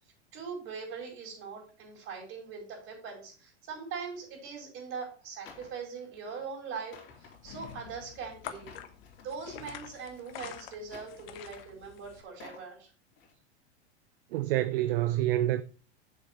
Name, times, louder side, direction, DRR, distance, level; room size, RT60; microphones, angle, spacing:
voice 1, 0.3-8.7 9.2-12.9, right 5 dB, 40° right, 4.9 m, -41 dB
sound 1, 5.4-5.8 6.1-6.4 6.8-9.3 9.5-10.3 10.8-11.7 12.2-12.7 13.1-13.3, left 5 dB, 35° left, 3.3 m, -53 dB
sound 2, 7.1-12.2, left 10 dB, 55° left, 1.2 m, -47 dB
voice 2, 14.3-15.6, right 14 dB, 55° right, 0.6 m, -27 dB
7.4 x 6.7 x 4.4 m
figure-of-eight pair, 90°, 34 cm